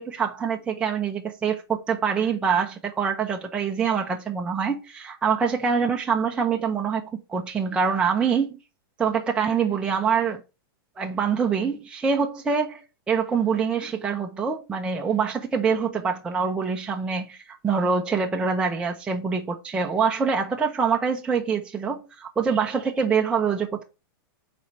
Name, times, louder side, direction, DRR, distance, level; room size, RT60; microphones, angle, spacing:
voice 1, 0.0-8.6 9.0-10.4 11.0-23.8, right 6 dB, 10° right, 0.6 m, -25 dB
4.8 x 4.2 x 5.9 m
supercardioid pair, 155°, 12 cm